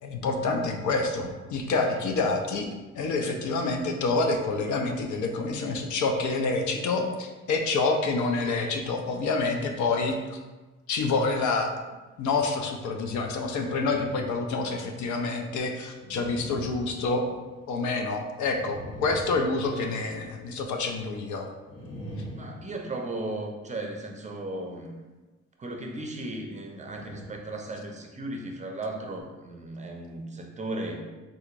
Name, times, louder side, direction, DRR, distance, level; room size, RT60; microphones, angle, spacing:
voice 1, 0.0-2.7 2.9-10.4 10.9-11.7 12.2-17.3 17.7-21.5, left 3 dB, 75° left, 3 dB, 0.5 m, -27 dB
sound 1, 13.7-14.4 14.9-15.0 16.0-17.8 18.4-20.1 21.6-23.4 26.7-27.5 27.9-28.1 28.9-29.2, equal, 60° left, 1.4 m, -43 dB
voice 2, 22.3-24.9 25.6-31.0, right 2 dB, 25° right, 2 dB, 0.5 m, -36 dB
3.6 x 2.8 x 2.5 m, 1.2 s
cardioid pair, 90°, 30 cm